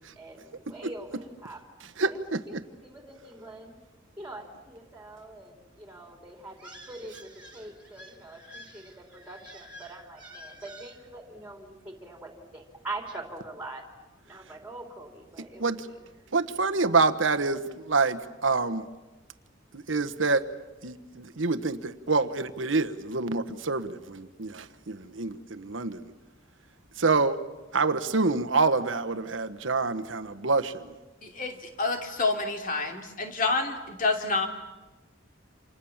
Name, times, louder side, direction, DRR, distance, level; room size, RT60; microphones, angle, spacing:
voice 1, 0.0-1.6 2.0-3.8 4.2-13.8 14.2-16.0 16.3-16.4, right 2 dB, 5° right, 3 dB, 3.8 m, -43 dB
voice 2, 16.3-18.8 19.9-20.4 20.8-26.1 27.0-27.4 27.7-30.7, right 3 dB, 75° right, 9 dB, 1.3 m, -26 dB
voice 3, 31.2-34.5, left 3 dB, 45° left, 4 dB, 3.1 m, -28 dB
29.0 x 27.5 x 7.3 m, 1.1 s
head